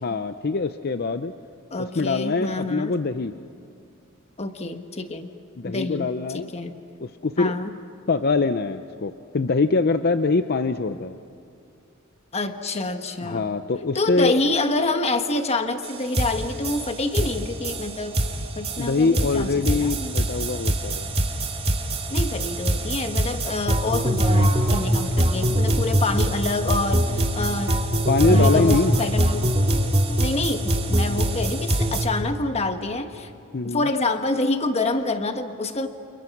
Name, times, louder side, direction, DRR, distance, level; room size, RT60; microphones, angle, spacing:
voice 1, 0.0-1.3 1.8-3.3 5.6-6.5 7.0-7.5 8.1-11.2 13.2-14.4 18.8-21.1 28.1-29.0 33.5-33.9, left 3 dB, 50° left, 10 dB, 0.6 m, -23 dB
voice 2, 1.7-2.9 4.4-5.3 5.6-6.7 7.4-7.7 12.3-13.5 13.9-18.2 18.6-20.2 22.1-27.8 28.3-29.5 30.2-33.3 33.6-35.9, left 2 dB, 30° left, 7 dB, 1.3 m, -27 dB
sound 1, 15.8-15.9 16.1-32.1, right 1 dB, 30° right, 2.3 m, -23 dB
29.5 x 28.5 x 5.9 m, 2.6 s
head